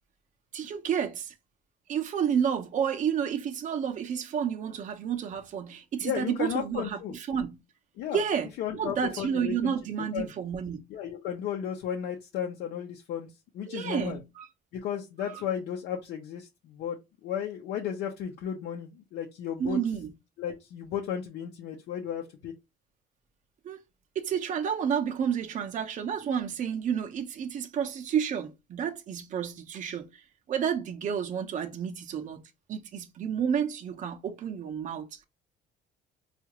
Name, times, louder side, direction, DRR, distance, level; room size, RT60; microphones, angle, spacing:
voice 1, 0.5-1.3 1.9-7.6 8.1-8.5 8.7-10.8 13.7-14.5 15.3-15.4 19.6-20.1 23.6-23.8 24.2-32.4 32.7-35.3, right 8 dB, 50° right, 0.7 m, -30 dB
voice 2, 6.0-7.1 8.0-8.2 8.6-9.7 10.0-10.3 10.9-13.3 13.5-14.2 14.7-19.8 20.4-22.5, left 9 dB, 80° left, 0.7 m, -34 dB
4.7 x 2.5 x 2.9 m
cardioid pair, 110°, 17 cm